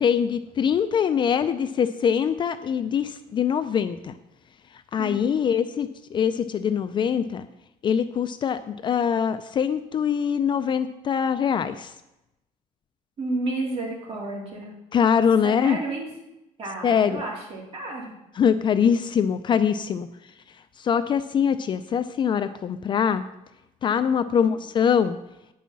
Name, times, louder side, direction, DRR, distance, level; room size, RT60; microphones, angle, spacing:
voice 1, 0.0-4.1 4.9-7.5 7.8-11.9 14.9-15.8 16.8-17.2 18.4-20.1 20.8-23.2 23.8-25.2, left 7 dB, 35° left, 11 dB, 0.4 m, -23 dB
voice 2, 5.0-5.5 13.2-14.7 15.4-16.1 16.6-18.2 24.3-24.6, right 2 dB, 45° right, -2 dB, 3.3 m, -32 dB
9.4 x 5.5 x 7.5 m, 0.90 s
cardioid pair, 160°, 14 cm